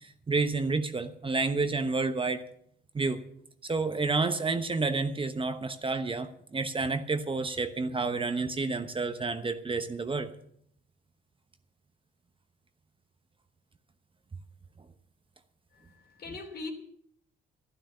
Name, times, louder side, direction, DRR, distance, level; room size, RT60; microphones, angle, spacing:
voice 1, 0.0-2.4 2.9-3.2 3.6-10.3 16.3-16.4, right 3 dB, 25° right, 9 dB, 1.0 m, -30 dB
voice 2, 15.7-16.7, left 3 dB, 55° left, 4 dB, 3.2 m, -41 dB
12.5 x 11.5 x 6.8 m, 0.68 s
cardioid pair, 90°, 20 cm